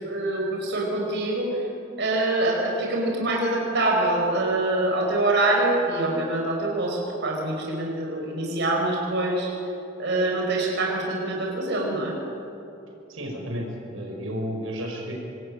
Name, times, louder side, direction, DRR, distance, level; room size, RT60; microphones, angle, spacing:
voice 1, 0.0-1.5 2.0-9.5 10.0-12.1, right 2 dB, 60° right, -1 dB, 4.8 m, -25 dB
voice 2, 13.1-15.1, equal, 90° right, 0 dB, 5.5 m, -32 dB
26.5 x 20.0 x 8.7 m, 2.8 s
head